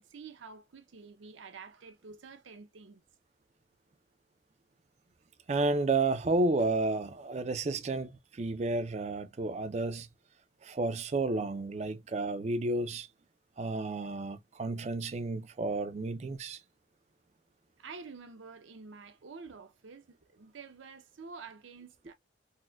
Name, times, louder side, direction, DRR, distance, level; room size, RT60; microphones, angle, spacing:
voice 1, 0.0-3.0 17.8-22.1, right 4 dB, 80° right, 0.6 m, -49 dB
voice 2, 5.5-10.1 10.6-13.1 13.6-16.6, right 2 dB, 35° right, 0.3 m, -31 dB
4.0 x 2.1 x 2.2 m
head